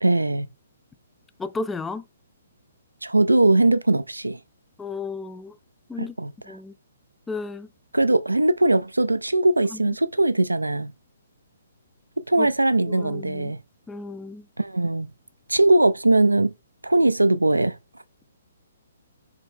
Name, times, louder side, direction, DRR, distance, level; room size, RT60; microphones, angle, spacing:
voice 1, 0.0-0.5 3.0-4.4 6.0-6.6 7.9-10.9 12.3-13.6 14.6-15.1 15.5-16.5 16.8-17.8, right 2 dB, 90° right, 0.4 m, -20 dB
voice 2, 1.4-2.0 4.8-5.6 5.9-6.2 6.5-6.7 7.3-7.7 9.7-9.9 12.4-12.5 12.9-13.5 13.9-14.5, left 3 dB, 10° left, 0.4 m, -33 dB
4.4 x 3.2 x 3.7 m
figure-of-eight pair, 130°, 0 cm